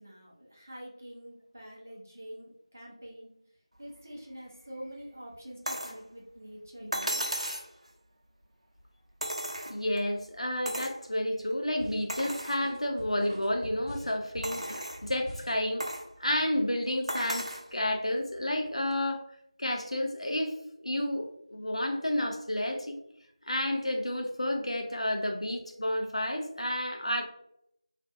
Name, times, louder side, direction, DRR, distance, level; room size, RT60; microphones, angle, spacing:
voice 1, 0.0-3.3 3.8-7.2, equal, 25° right, -4 dB, 0.4 m, -46 dB
sound 1, 5.7-6.0 6.9-7.7 9.2-10.0 10.7-11.0 11.5-11.6 12.1-12.6 13.2-13.3 14.4-15.0 15.8-16.1 17.1-17.7 18.9-19.0, right 1 dB, 75° right, 0.6 m, -35 dB
voice 2, 9.7-15.9 16.2-19.2 19.6-20.5 20.8-23.0 23.5-27.2, left 1 dB, 65° left, 2 dB, 0.5 m, -31 dB
sound 2, 11.8-15.6, equal, 10° left, 0.8 m, -44 dB
2.4 x 2.1 x 2.5 m, 0.74 s
figure-of-eight pair, 175°, 3 cm